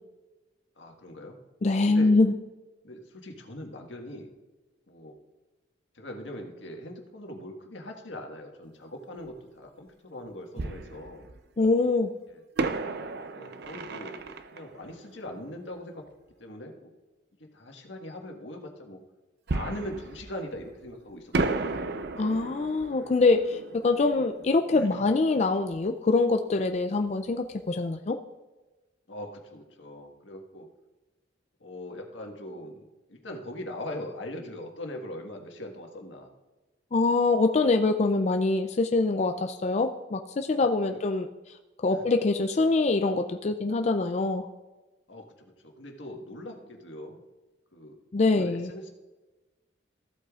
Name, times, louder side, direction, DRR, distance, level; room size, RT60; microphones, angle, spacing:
voice 1, 0.8-1.4 1.9-2.1 2.8-4.3 4.9-5.1 5.9-11.3 12.3-12.4 13.2-16.1 16.4-16.9 17.4-19.0 19.5-21.7 24.7-25.0 29.1-30.7 31.6-32.8 33.1-36.3 40.8-41.0 41.9-42.0 45.1-47.2 47.7-48.0 48.3-48.9, left 1 dB, 85° left, 2 dB, 1.6 m, -41 dB
voice 2, 1.6-2.3 11.6-12.1 22.2-28.2 36.9-41.3 41.8-44.5 48.1-48.7, left 3 dB, 35° left, 6 dB, 0.4 m, -24 dB
Fireworks, 9.3-9.4 10.6-11.7 12.6-16.0 19.5-20.9 21.3-25.9 26.1-26.2 26.7-27.0, right 3 dB, 60° right, 0.6 m, -34 dB
14.5 x 8.2 x 2.4 m, 1.2 s
head